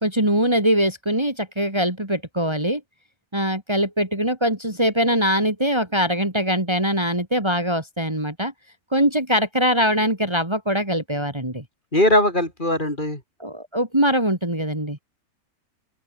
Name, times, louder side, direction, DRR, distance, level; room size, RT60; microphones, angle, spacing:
voice 1, 0.0-2.8 3.3-8.5 8.9-11.6 13.4-15.0, equal, 20° right, 3.4 m, -22 dB
voice 2, 11.9-13.2, left 1 dB, 35° left, 5.4 m, -20 dB
open air
omnidirectional pair, 1.5 m